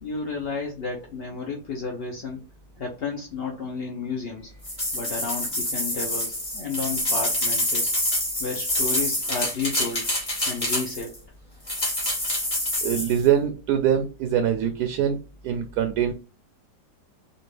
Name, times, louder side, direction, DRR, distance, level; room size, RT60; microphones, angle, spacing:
voice 1, 0.0-2.4 2.8-4.5 4.9-7.9 8.4-10.1 10.5-11.2, left 4 dB, 60° left, -1 dB, 0.6 m, -32 dB
sound 1, 4.6-11.2 11.7-13.2, left 1 dB, 20° left, 1.5 m, -26 dB
voice 2, 12.8-15.2 15.4-16.1, right 9 dB, 70° right, 7 dB, 1.0 m, -23 dB
4.3 x 2.4 x 3.2 m, 0.33 s
omnidirectional pair, 1.9 m